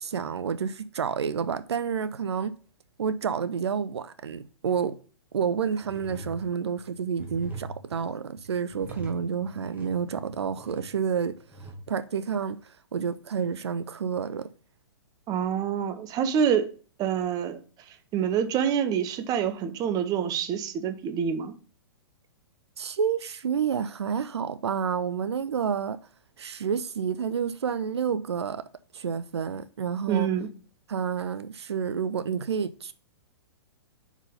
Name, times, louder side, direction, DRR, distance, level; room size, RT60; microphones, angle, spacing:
voice 1, 0.0-2.5 3.0-5.0 5.3-11.4 11.9-14.5 22.8-26.0 26.4-28.6 28.9-30.3 30.9-32.9, right 7 dB, 80° right, 0.5 m, -29 dB
sound 1, 5.4-5.5 5.8-11.7, right 3 dB, 10° right, 1.7 m, -43 dB
voice 2, 15.3-16.7 17.0-17.6 18.1-21.5 30.1-30.5, right 8 dB, 25° right, 0.8 m, -26 dB
5.6 x 4.9 x 5.1 m
hypercardioid pair, 125°, 14 cm